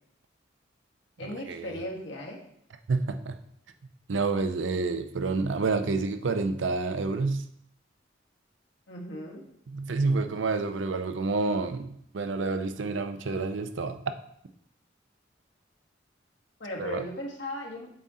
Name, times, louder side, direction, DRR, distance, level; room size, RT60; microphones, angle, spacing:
voice 1, 1.2-2.4 8.9-9.4 16.6-17.9, left 1 dB, 75° left, -1 dB, 1.5 m, -37 dB
voice 2, 2.9-3.4 4.1-7.4 9.7-14.0 16.8-17.0, right 3 dB, 85° right, 8 dB, 0.6 m, -28 dB
7.7 x 4.2 x 3.7 m, 0.70 s
head